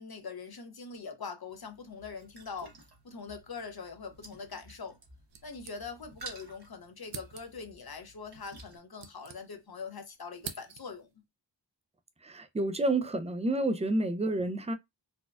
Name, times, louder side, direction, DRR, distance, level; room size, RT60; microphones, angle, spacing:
voice 1, 0.0-2.7 3.0-5.0 5.4-11.1 14.0-14.1, left 5 dB, 55° left, 0.7 m, -43 dB
sound 1, 1.5-8.8, right 3 dB, 60° right, 1.1 m, -52 dB
sound 2, 5.3-6.3 6.6-6.7 7.1-7.8 8.6-9.9 10.1-11.1, right 7 dB, 75° right, 0.5 m, -47 dB
voice 2, 12.2-14.7, right 2 dB, 15° right, 0.4 m, -29 dB
4.2 x 2.3 x 2.3 m
wide cardioid pair, 65°, 45 cm